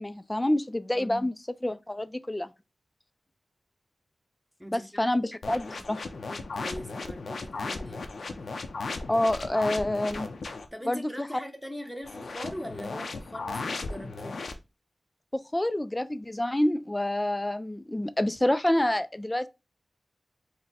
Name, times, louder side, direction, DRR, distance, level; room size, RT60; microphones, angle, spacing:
voice 1, 0.0-1.3 1.6-2.5 4.7-6.0 9.1-10.3 10.9-11.3 15.3-19.5, left 1 dB, 15° left, 0.4 m, -27 dB
voice 2, 0.9-1.3 4.6-5.1 5.7-8.5 10.7-14.4, equal, ahead, 0.9 m, -42 dB
sound 1, 5.4-10.7 12.0-14.5, left 3 dB, 80° left, 0.6 m, -36 dB
4.1 x 2.1 x 4.1 m
cardioid pair, 55°, 0 cm